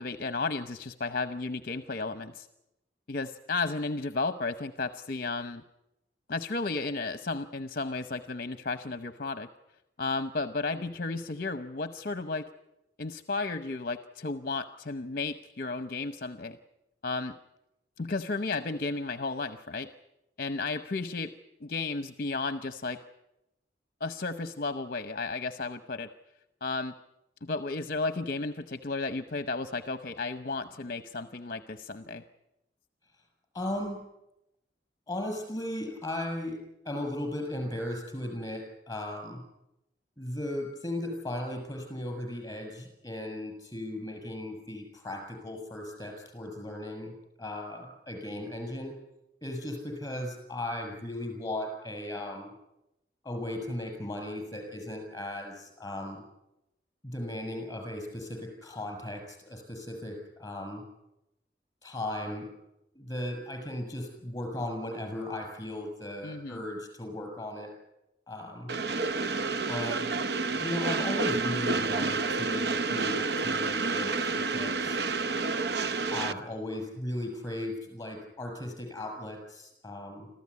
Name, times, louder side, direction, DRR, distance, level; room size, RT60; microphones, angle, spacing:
voice 1, 0.0-2.5 3.1-5.6 6.3-9.5 10.0-12.5 13.0-16.6 17.0-17.4 18.0-19.9 20.4-21.3 21.6-23.0 24.0-26.1 26.6-26.9 27.4-32.2 66.2-66.6, left 3 dB, 50° left, 10 dB, 0.8 m, -33 dB
voice 2, 33.5-34.0 35.1-36.6 36.9-39.4 40.2-48.9 49.4-52.5 53.2-56.2 57.0-60.8 61.8-62.5 62.9-67.7 68.3-68.7 69.7-70.0 70.6-75.0 76.1-80.3, left 1 dB, 20° left, 4 dB, 6.9 m, -36 dB
Train, 68.7-76.3, right 4 dB, 60° right, 0.7 m, -29 dB
26.5 x 15.0 x 9.6 m, 0.90 s
head